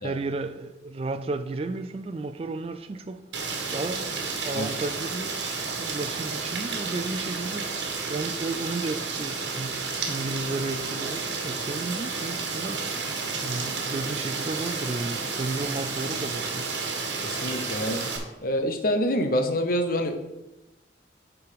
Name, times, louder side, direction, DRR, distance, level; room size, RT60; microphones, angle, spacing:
voice 1, 0.0-5.3 5.8-16.8, right 3 dB, 30° right, 0.3 m, -33 dB
Rain, 3.3-18.2, right 4 dB, 70° right, 1.4 m, -31 dB
voice 2, 17.2-18.1 18.4-20.2, equal, 50° left, 0.8 m, -26 dB
8.5 x 4.8 x 5.0 m
head